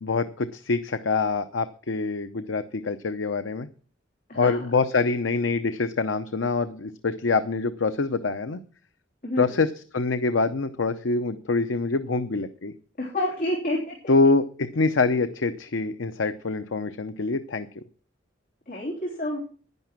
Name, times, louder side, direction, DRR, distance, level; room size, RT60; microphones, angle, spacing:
voice 1, 0.0-3.7 4.3-8.6 9.4-12.7 14.1-17.8, left 4 dB, 75° left, 10 dB, 0.7 m, -25 dB
voice 2, 4.3-4.6 9.2-9.6 13.0-14.0 18.7-19.4, left 1 dB, 45° left, -3 dB, 3.5 m, -29 dB
11.0 x 10.5 x 6.0 m, 0.42 s
head